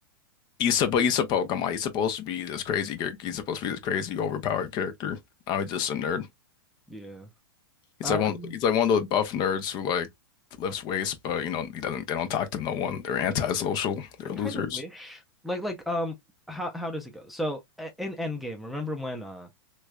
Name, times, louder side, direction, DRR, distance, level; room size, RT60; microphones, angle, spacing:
voice 1, 0.6-5.2 5.5-6.3 8.0-8.3 8.6-10.1 10.6-14.8, left 8 dB, 35° left, 0.7 m, -27 dB
voice 2, 6.9-7.3 8.0-8.6 14.4-16.2 16.5-19.5, left 1 dB, ahead, 0.6 m, -34 dB
3.2 x 3.2 x 2.3 m
hypercardioid pair, 140°, 13 cm